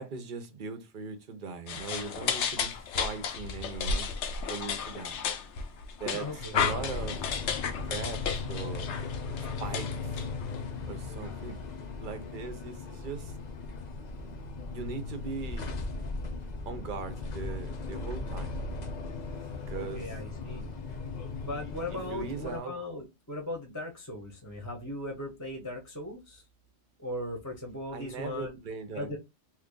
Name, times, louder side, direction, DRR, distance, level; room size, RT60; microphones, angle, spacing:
voice 1, 0.0-4.1 4.5-5.2 6.0-7.2 7.8-8.9 9.6-10.2 10.9-11.6 12.0-13.3 14.7-15.7 16.6-18.6 19.7-20.1 22.1-22.7 27.9-29.1, right 5 dB, 50° right, 0.8 m, -39 dB
sound 1, 1.7-10.7, left 6 dB, 75° left, 0.9 m, -33 dB
voice 2, 6.1-6.6 11.2-11.4 19.7-20.7 21.4-26.4 27.0-28.6 28.9-29.2, left 1 dB, 15° left, 0.8 m, -38 dB
sound 2, 6.5-22.6, left 3 dB, 50° left, 0.6 m, -38 dB
3.0 x 2.4 x 3.7 m
omnidirectional pair, 1.2 m